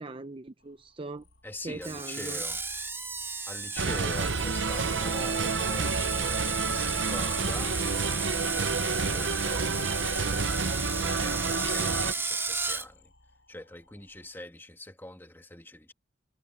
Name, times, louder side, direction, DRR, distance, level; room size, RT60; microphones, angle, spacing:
voice 1, 0.0-1.3 1.6-2.4, right 3 dB, 30° right, 0.6 m, -40 dB
sound 1, 0.6-14.4, left 2 dB, 90° left, 5.5 m, -60 dB
voice 2, 1.4-2.6 3.1-7.8 8.2-13.1 13.5-15.9, left 1 dB, 10° left, 2.1 m, -44 dB
Screech, 1.8-12.9, right 4 dB, 15° right, 2.2 m, -34 dB
sound 2, 3.8-12.1, right 4 dB, 85° right, 0.9 m, -29 dB
head